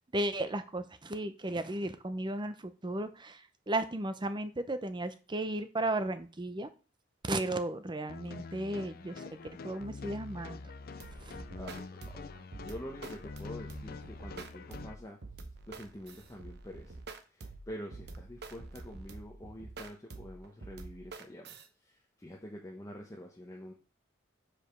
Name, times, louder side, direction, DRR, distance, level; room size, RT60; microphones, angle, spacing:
voice 1, 0.1-6.7 7.2-9.2 9.6-10.6 11.2-11.3, right 1 dB, 25° right, 11 dB, 0.7 m, -35 dB
sound 1, 8.1-14.9, left 4 dB, 50° left, 0.5 m, -45 dB
sound 2, 11.0-21.7, right 3 dB, 60° right, 0.8 m, -47 dB
voice 2, 11.5-15.2 15.7-17.0 17.3-21.4 21.8-23.7, equal, 15° left, -1 dB, 0.9 m, -46 dB
5.1 x 5.1 x 6.0 m, 0.36 s
head